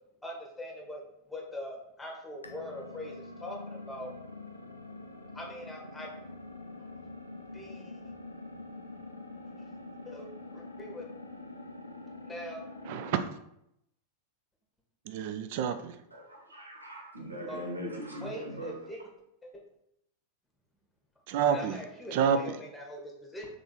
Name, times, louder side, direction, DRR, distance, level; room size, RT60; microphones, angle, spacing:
voice 1, 0.2-1.0 1.3-4.1 5.3-6.1 7.5-7.9 10.0-10.3 10.5-11.0 12.2-12.6 17.5-17.6 18.2-19.0 19.4-19.6 21.5-23.5, left 1 dB, 5° left, -1 dB, 1.1 m, -42 dB
sound 1, 2.4-13.3, left 2 dB, 85° left, 0.5 m, -45 dB
voice 2, 12.9-13.2 15.1-15.9 21.3-21.8 22.1-22.4, right 8 dB, 50° right, 9 dB, 0.3 m, -28 dB
voice 3, 16.1-18.7, equal, 80° right, -1 dB, 0.9 m, -40 dB
3.8 x 3.2 x 3.7 m, 0.78 s
figure-of-eight pair, 90°, 0 cm